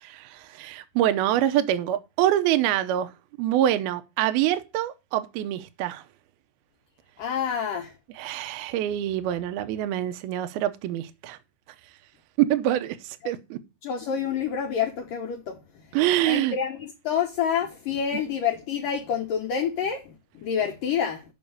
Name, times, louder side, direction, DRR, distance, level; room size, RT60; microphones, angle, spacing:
voice 1, 0.0-3.1 3.4-6.0 8.2-11.4 12.4-13.6 15.9-16.6, right 12 dB, 75° right, 2.4 m, -25 dB
voice 2, 7.2-7.9 13.8-15.6 16.2-21.3, left 7 dB, 70° left, 2.2 m, -28 dB
7.0 x 6.1 x 6.5 m
omnidirectional pair, 5.2 m